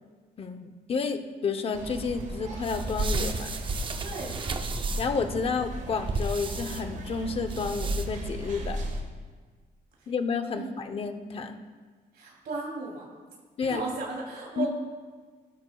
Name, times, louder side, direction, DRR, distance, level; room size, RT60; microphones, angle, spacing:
voice 1, 0.4-3.5 5.0-8.8 10.1-11.6 13.6-13.8 14.6-14.7, left 5 dB, 35° left, 7 dB, 0.7 m, -30 dB
sound 1, 1.7-9.0, right 1 dB, 50° right, 1.4 m, -37 dB
sound 2, 2.6-5.2 6.1-6.8 7.5-8.3, right 2 dB, 30° right, 0.6 m, -32 dB
voice 2, 4.0-4.4 10.0-10.1 10.5-11.0 12.1-13.1 13.7-14.7, right 3 dB, 80° right, -3 dB, 2.9 m, -36 dB
17.5 x 12.5 x 2.3 m, 1.5 s
wide cardioid pair, 175°, 16 cm